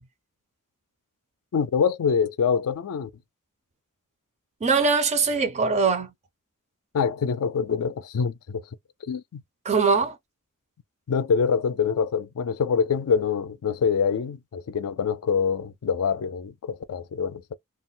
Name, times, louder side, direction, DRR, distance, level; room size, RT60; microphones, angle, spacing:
voice 1, 1.5-3.1 6.9-8.6 9.1-9.4 11.1-17.5, left 6 dB, 70° left, 0.4 m, -25 dB
voice 2, 4.6-6.1 9.7-10.2, right 4 dB, 30° right, 0.4 m, -22 dB
2.3 x 2.0 x 3.7 m
head